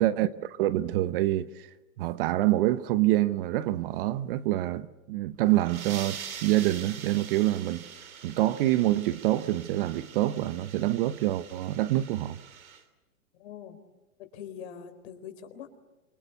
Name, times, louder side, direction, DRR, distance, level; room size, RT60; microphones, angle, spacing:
voice 1, 0.0-1.7 2.0-7.8 8.2-12.4, right 15 dB, 40° right, 0.9 m, -26 dB
sound 1, 5.4-12.8, right 8 dB, 80° right, 3.3 m, -44 dB
voice 2, 13.4-13.8 14.2-15.8, left 8 dB, 50° left, 4.1 m, -43 dB
27.5 x 24.5 x 8.2 m
hypercardioid pair, 140°, 41 cm